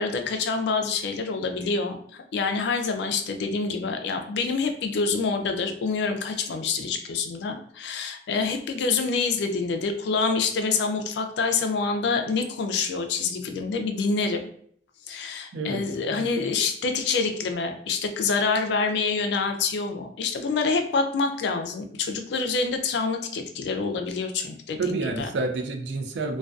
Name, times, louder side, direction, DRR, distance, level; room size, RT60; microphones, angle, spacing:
voice 1, 0.0-2.0 2.3-14.4 15.1-25.3, left 4 dB, 65° left, 6 dB, 0.3 m, -26 dB
voice 2, 24.8-26.4, right 3 dB, 70° right, 5 dB, 0.4 m, -29 dB
2.4 x 2.2 x 2.3 m, 0.62 s
head